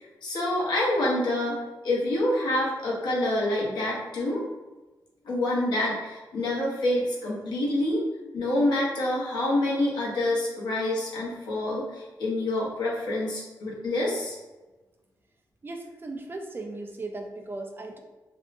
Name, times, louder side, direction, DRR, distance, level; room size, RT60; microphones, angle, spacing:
voice 1, 0.0-4.4 5.2-8.0 8.3-14.3, left 1 dB, 85° left, -5 dB, 0.8 m, -27 dB
voice 2, 15.6-18.0, right 2 dB, 30° right, 3 dB, 0.3 m, -37 dB
2.6 x 2.1 x 2.5 m, 1.2 s
cardioid pair, 100°, 7 cm